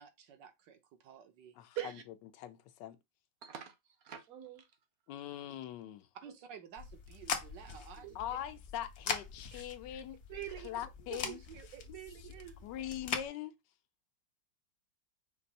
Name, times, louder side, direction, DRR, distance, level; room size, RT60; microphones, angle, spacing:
voice 1, 0.0-1.6 6.2-8.2, right 7 dB, 85° right, 1.5 m, -53 dB
voice 2, 2.4-3.0 5.1-6.1 8.1-10.2 10.6-11.4 12.2-12.3 12.6-13.6, left 11 dB, 80° left, 1.3 m, -42 dB
voice 3, 3.4-4.7 6.3-6.4 8.0-8.1 9.5-9.6 10.3-10.7 11.1-12.6, right 11 dB, 65° right, 1.0 m, -45 dB
sound 1, 6.8-13.3, left 6 dB, 55° left, 0.8 m, -42 dB
5.2 x 2.5 x 4.0 m
omnidirectional pair, 1.9 m